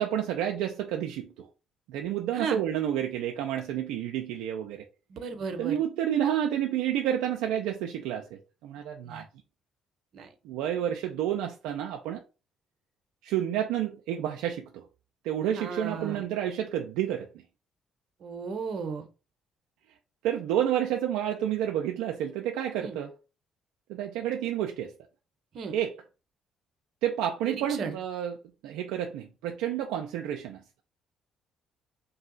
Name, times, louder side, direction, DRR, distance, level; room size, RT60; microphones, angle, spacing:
voice 1, 0.0-1.5 1.9-4.9 5.6-9.3 10.4-12.2 13.2-14.8 15.2-17.3 20.2-23.1 23.9-24.9 25.7-26.0 27.0-28.4 28.6-30.6, right 10 dB, 85° right, 0.3 m, -30 dB
voice 2, 5.1-5.7 9.0-9.2 10.1-10.3 15.5-16.2 18.2-19.1 22.8-23.0 25.5-25.7 27.4-27.9, right 5 dB, 65° right, 0.7 m, -35 dB
2.7 x 2.3 x 3.8 m
supercardioid pair, 70°, 0 cm